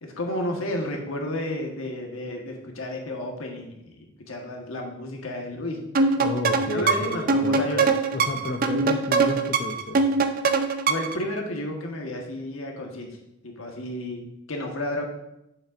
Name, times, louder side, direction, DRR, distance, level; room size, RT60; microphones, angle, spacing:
voice 1, 0.0-5.8 6.7-7.9 10.9-13.2 13.4-15.0, left 1 dB, 90° left, 1 dB, 1.3 m, -32 dB
sound 1, 5.9-11.2, right 4 dB, 45° right, 0.5 m, -23 dB
voice 2, 6.2-7.7 8.1-10.0, left 1 dB, 45° left, 2 dB, 0.6 m, -31 dB
8.7 x 7.3 x 2.5 m, 0.83 s
head